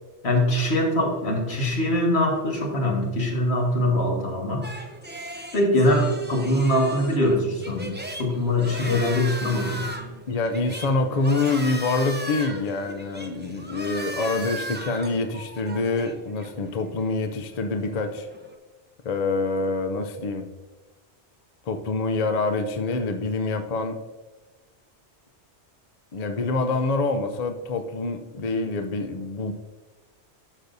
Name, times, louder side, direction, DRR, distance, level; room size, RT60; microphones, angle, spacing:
voice 1, 0.2-4.7 5.5-9.9, left 1 dB, 65° left, 0 dB, 1.9 m, -23 dB
sound 1, 4.6-18.5, right 1 dB, 10° right, 0.7 m, -37 dB
voice 2, 10.3-18.3 19.0-20.5 21.7-24.0 26.1-29.5, left 3 dB, 45° left, 7 dB, 0.6 m, -26 dB
11.5 x 6.6 x 2.6 m, 1.2 s
omnidirectional pair, 1.2 m